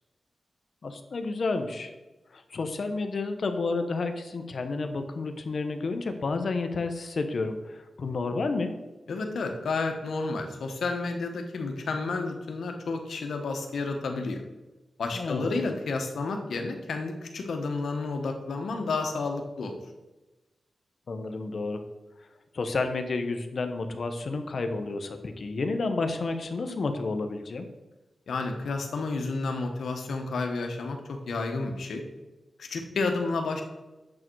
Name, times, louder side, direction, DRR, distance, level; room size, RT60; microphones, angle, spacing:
voice 1, 0.8-1.9 2.3-8.7 15.1-15.7 21.1-21.8 22.5-27.7, left 3 dB, 65° left, 7 dB, 1.1 m, -30 dB
voice 2, 9.1-14.4 15.0-19.7 28.3-32.0 32.6-33.6, left 3 dB, 85° left, 4 dB, 1.3 m, -31 dB
8.7 x 7.6 x 4.7 m, 1.1 s
cardioid pair, 70°, 0 cm